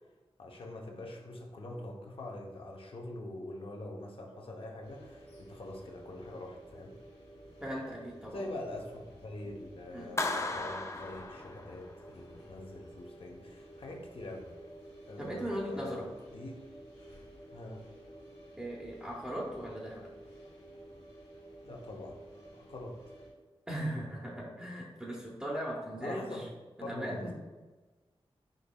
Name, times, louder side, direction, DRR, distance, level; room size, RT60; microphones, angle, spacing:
voice 1, 0.4-6.9 8.3-14.6 15.1-16.5 17.5-17.8 21.6-22.2 22.5-23.0 26.0-26.5 26.8-27.3, left 1 dB, 60° left, 1 dB, 0.7 m, -44 dB
sound 1, 4.8-23.3, right 1 dB, 85° left, 1.4 m, -52 dB
voice 2, 7.6-8.5 9.9-10.1 15.2-16.1 18.6-20.1 23.7-26.5 26.8-27.3, equal, 10° right, -4 dB, 0.7 m, -38 dB
Clapping, 10.2-12.0, left 2 dB, 30° left, 0.4 m, -36 dB
5.2 x 4.0 x 2.2 m, 1.2 s
wide cardioid pair, 110°, 10 cm